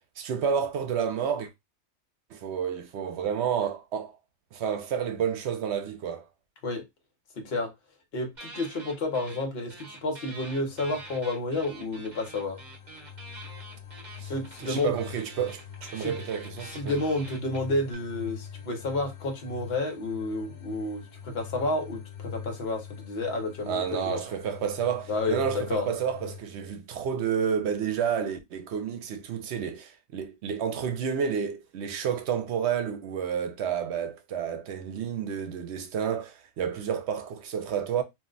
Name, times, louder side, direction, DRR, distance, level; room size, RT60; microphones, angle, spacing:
voice 1, 0.2-1.5 2.3-4.1 4.5-6.3 14.2-14.3 14.6-17.0 23.7-38.0, right 7 dB, 75° right, 0.9 m, -30 dB
voice 2, 7.4-7.7 8.1-12.6 14.2-14.9 16.0-16.2 16.6-24.2 25.1-25.9, left 2 dB, 65° left, 1.1 m, -30 dB
sound 1, 8.3-9.4 9.7-17.9, right 2 dB, 45° right, 0.9 m, -46 dB
sound 2, 10.1-26.4, left 8 dB, 85° left, 1.0 m, -44 dB
2.6 x 2.1 x 3.8 m
omnidirectional pair, 1.2 m